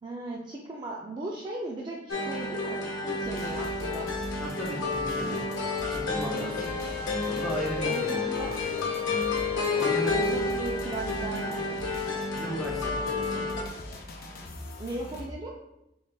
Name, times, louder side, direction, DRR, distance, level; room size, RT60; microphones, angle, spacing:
voice 1, 0.0-4.1 6.3-6.8 7.8-8.6 9.5-11.8 14.8-15.5, right 1 dB, 25° right, -3 dB, 0.4 m, -37 dB
sound 1, 2.1-13.6, left 3 dB, 80° left, 0.8 m, -30 dB
sound 2, 3.2-15.3, left 1 dB, 55° left, 0.5 m, -42 dB
voice 2, 4.4-5.4 5.9-6.6 7.3-8.9 9.8-10.2 12.3-13.5, right 1 dB, ahead, -3 dB, 0.7 m, -36 dB
3.8 x 3.7 x 2.3 m, 0.88 s
head